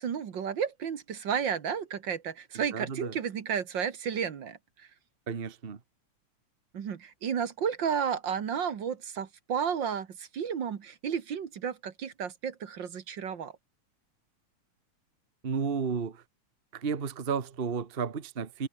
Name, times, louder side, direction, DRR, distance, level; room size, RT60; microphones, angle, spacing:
voice 1, 0.0-4.6 6.7-13.5, right 7 dB, 45° right, 1.8 m, -32 dB
voice 2, 2.5-3.2 5.3-5.8 15.4-16.2 16.7-18.7, right 6 dB, 70° right, 0.5 m, -33 dB
omnidirectional pair, 3.4 m